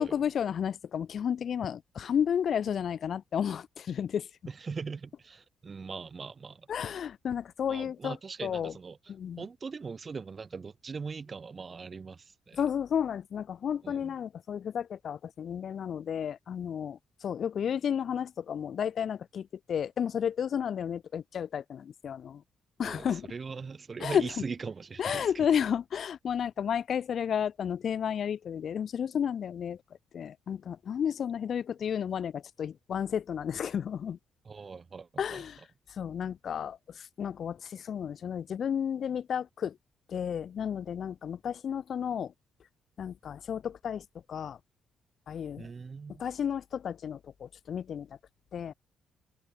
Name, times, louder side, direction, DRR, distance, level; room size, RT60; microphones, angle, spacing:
voice 1, 0.0-4.3 6.7-8.2 8.4-8.7 9.1-9.4 12.5-22.4 22.8-23.3 24.0-24.3 25.0-29.8 30.1-34.2 35.2-35.6 35.9-39.8 40.1-42.3 43.0-44.6 45.3-45.7 46.2-48.1 48.5-48.7, left 8 dB, 55° left, 1.3 m, -32 dB
voice 2, 4.4-6.7 7.7-9.0 9.4-12.6 13.8-14.1 22.8-25.3 34.4-35.4 45.6-46.2, right 5 dB, 35° right, 1.4 m, -40 dB
cardioid pair, 105°, 0 cm